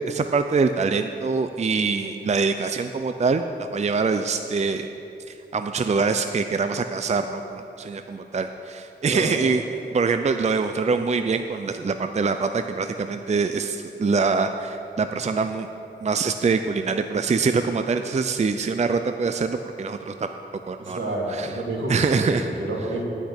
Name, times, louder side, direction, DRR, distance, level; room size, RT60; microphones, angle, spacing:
voice 1, 0.1-4.9 5.3-15.7 16.0-20.3 20.7-21.0 21.3-21.5 21.9-22.5, right 4 dB, 35° right, 7 dB, 0.4 m, -24 dB
voice 2, 9.1-9.4 20.8-23.0, right 1 dB, 75° right, -2 dB, 2.2 m, -29 dB
10.5 x 6.1 x 8.5 m, 2.9 s
wide cardioid pair, 80°, 20 cm